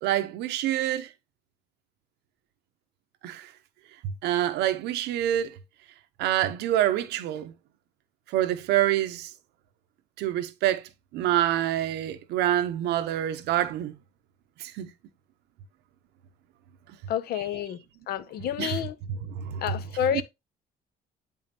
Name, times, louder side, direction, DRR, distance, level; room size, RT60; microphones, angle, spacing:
voice 1, 0.0-1.1 3.2-3.5 4.0-5.6 6.2-7.5 8.3-9.3 10.2-10.8 11.1-14.0 14.6-14.9 18.6-18.7 19.4-19.6 20.1-20.2, right 12 dB, 85° right, 0.8 m, -26 dB
voice 2, 17.1-19.0 19.6-20.2, left 9 dB, 65° left, 0.6 m, -29 dB
7.7 x 5.5 x 2.9 m
cardioid pair, 110°, 17 cm